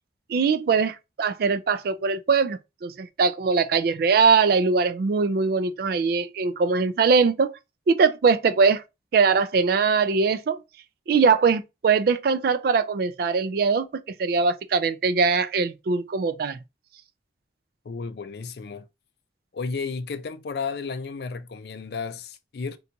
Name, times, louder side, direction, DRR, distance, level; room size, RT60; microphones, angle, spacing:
voice 1, 0.3-7.5 7.9-8.8 9.1-10.6 11.1-16.6, right 5 dB, 55° right, 0.3 m, -22 dB
voice 2, 17.8-18.9 19.5-22.8, left 4 dB, 60° left, 0.4 m, -33 dB
2.8 x 2.3 x 3.7 m
head